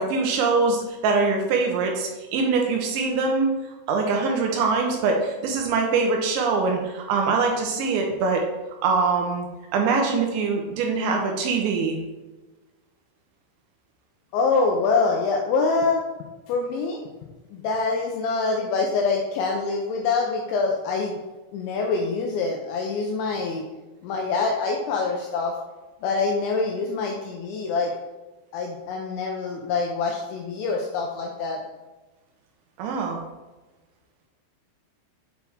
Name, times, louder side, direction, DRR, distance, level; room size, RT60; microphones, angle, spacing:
voice 1, 0.0-3.5 3.9-8.4 8.8-9.5 9.7-12.0 32.8-33.2, right 4 dB, 85° right, 1 dB, 2.8 m, -23 dB
voice 2, 14.3-16.0 16.5-17.0 17.5-21.2 21.5-23.6 24.0-25.6 26.0-27.9 28.5-31.6, left 4 dB, 85° left, 1 dB, 2.6 m, -25 dB
8.2 x 4.6 x 3.4 m, 1.1 s
omnidirectional pair, 5.9 m